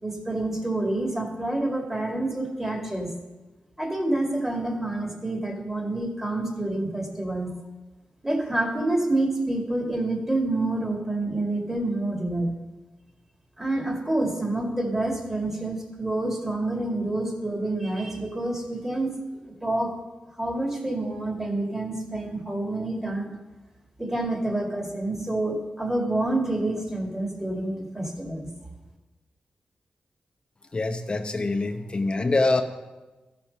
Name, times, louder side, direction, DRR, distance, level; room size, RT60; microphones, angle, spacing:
voice 1, 0.0-3.1 3.8-7.5 8.2-12.5 13.6-19.1 19.5-19.9 20.4-23.3 24.0-28.5, right 2 dB, 15° right, 2 dB, 2.3 m, -28 dB
voice 2, 30.7-32.6, left 3 dB, 35° left, 5 dB, 0.8 m, -24 dB
14.0 x 6.0 x 5.4 m, 1.1 s
cardioid pair, 70°, 3 cm